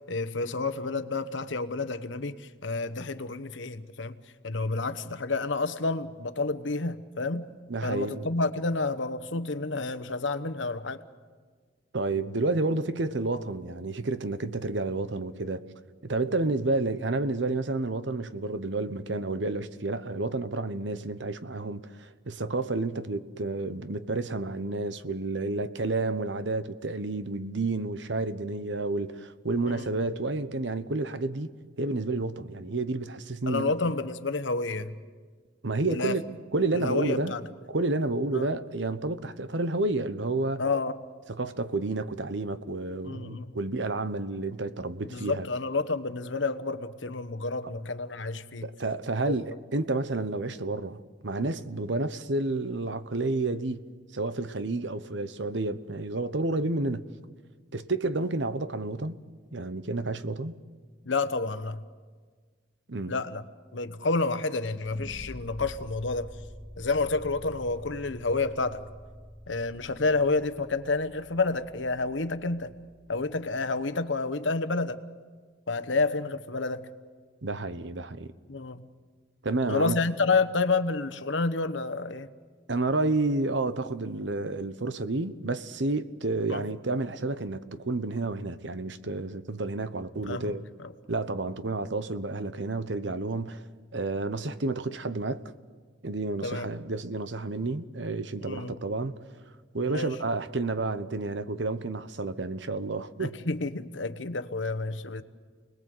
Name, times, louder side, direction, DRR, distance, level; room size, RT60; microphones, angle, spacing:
voice 1, 0.1-4.2 4.4-7.5 7.8-11.0 29.7-29.9 33.5-34.9 35.9-36.1 36.7-37.4 38.3-38.5 40.6-41.0 43.0-43.5 45.1-48.7 49.2-49.3 61.0-61.8 63.1-63.4 63.7-66.4 66.8-68.8 69.5-72.7 73.1-75.0 75.7-76.9 78.5-78.9 79.7-82.3 86.5-86.6 90.3-90.5 90.8-90.9 96.4-96.7 98.4-98.8 99.9-100.1 103.2-105.2, left 3 dB, 75° left, 1.1 m, -29 dB
voice 2, 7.7-8.2 11.9-15.6 16.0-31.5 31.8-33.7 35.6-36.2 36.5-37.4 37.7-40.6 41.3-45.5 48.6-53.8 54.1-57.1 57.7-59.2 59.5-60.6 62.9-63.2 77.4-78.3 79.4-80.0 82.7-90.6 91.1-93.7 93.9-95.5 96.0-99.3 99.7-103.3, right 2 dB, 70° right, 1.0 m, -30 dB
sound 1, 64.8-73.8, equal, ahead, 2.6 m, -47 dB
29.5 x 20.5 x 7.9 m
head